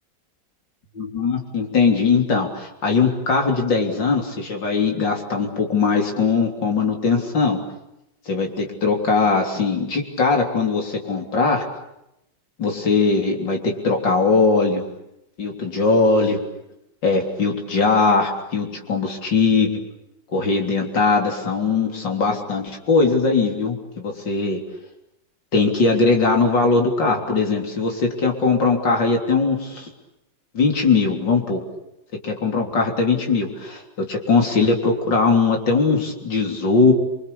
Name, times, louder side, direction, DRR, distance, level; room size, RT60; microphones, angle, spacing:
voice 1, 1.0-7.6 8.3-11.6 12.6-14.8 15.4-16.4 17.0-19.7 20.3-24.6 25.5-29.9 30.5-31.6 32.2-36.9, left 4 dB, 80° left, 2 dB, 4.2 m, -20 dB
27.5 x 24.5 x 8.5 m, 0.85 s
omnidirectional pair, 1.9 m